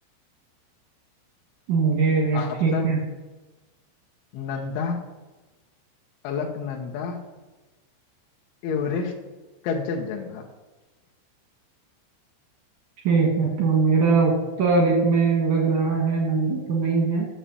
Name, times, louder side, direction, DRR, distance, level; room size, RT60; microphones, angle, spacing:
voice 1, 1.7-3.0 13.0-14.3 14.6-17.3, right 4 dB, 75° right, -1 dB, 1.8 m, -21 dB
voice 2, 2.3-3.0 4.3-5.0 6.2-7.2 8.6-9.1 9.6-10.5, left 5 dB, 75° left, 0 dB, 3.0 m, -29 dB
10.0 x 7.2 x 6.8 m, 1.2 s
omnidirectional pair, 6.0 m